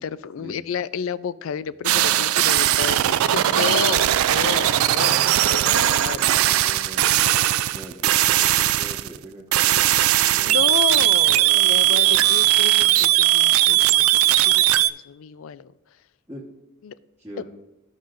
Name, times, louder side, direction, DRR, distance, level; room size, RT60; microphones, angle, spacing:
voice 1, 0.0-5.2 5.4-6.3 10.4-14.1 14.4-15.7 16.8-17.0 17.4-17.5, left 7 dB, 75° left, 17 dB, 0.3 m, -31 dB
sound 1, 1.8-9.2 9.5-14.9, right 14 dB, 85° right, 0.3 m, -19 dB
voice 2, 3.1-3.7 4.9-7.2 7.7-10.0 10.3-12.5 16.3-16.4 17.2-17.4, equal, 10° right, -8 dB, 1.2 m, -41 dB
15.0 x 5.5 x 2.5 m, 0.99 s
head